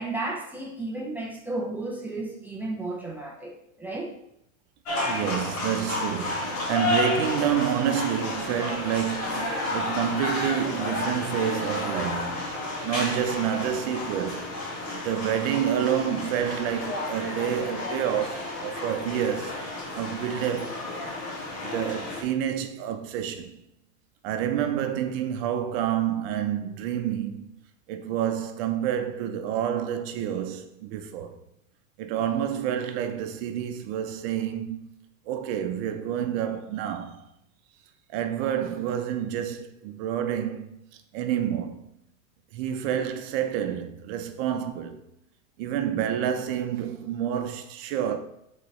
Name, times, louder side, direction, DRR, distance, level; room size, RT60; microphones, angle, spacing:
voice 1, 0.0-4.1, right 2 dB, 5° right, 0.5 m, -33 dB
sound 1, 4.8-22.2, left 2 dB, 35° left, 2.1 m, -31 dB
voice 2, 5.1-12.5 12.8-14.5 14.9-19.6 19.9-20.7 21.6-23.6 24.2-27.6 27.9-31.4 32.0-34.9 35.3-37.2 38.1-41.8 42.5-45.0 45.6-48.2, right 9 dB, 45° right, 0.8 m, -28 dB
7.6 x 4.1 x 3.2 m
supercardioid pair, 145°, 42 cm